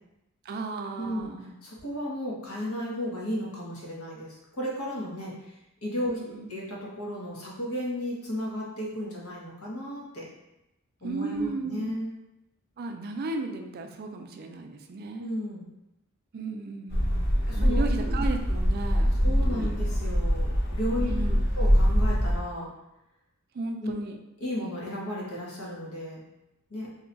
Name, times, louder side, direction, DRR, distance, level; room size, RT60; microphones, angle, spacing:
voice 1, 0.4-1.6 6.1-6.5 11.0-11.9 12.8-15.3 16.3-19.7 21.0-21.4 23.5-24.2, right 3 dB, 45° right, 4 dB, 0.3 m, -35 dB
voice 2, 1.0-1.3 1.6-5.3 5.8-6.2 6.5-10.2 11.0-12.1 15.2-15.7 17.5-18.3 19.2-21.1 21.5-22.7 23.8-23.9 24.4-26.2 26.7-26.9, left 1 dB, 75° left, -4 dB, 1.0 m, -34 dB
sound 1, 16.9-22.4, equal, 50° left, 0.6 m, -24 dB
2.8 x 2.3 x 3.9 m, 0.90 s
head